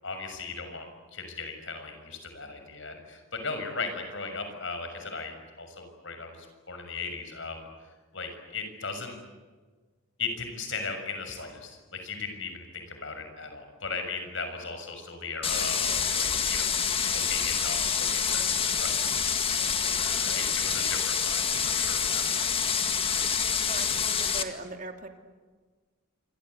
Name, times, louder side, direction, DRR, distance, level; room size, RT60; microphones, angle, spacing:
voice 1, 0.0-7.7 8.1-9.2 10.2-22.5, left 4 dB, 60° left, 6 dB, 6.6 m, -37 dB
sound 1, 15.4-24.4, left 7 dB, 25° left, 2.0 m, -27 dB
voice 2, 23.7-25.1, right 2 dB, 40° right, 5 dB, 2.8 m, -39 dB
27.5 x 26.0 x 8.3 m, 1.4 s
head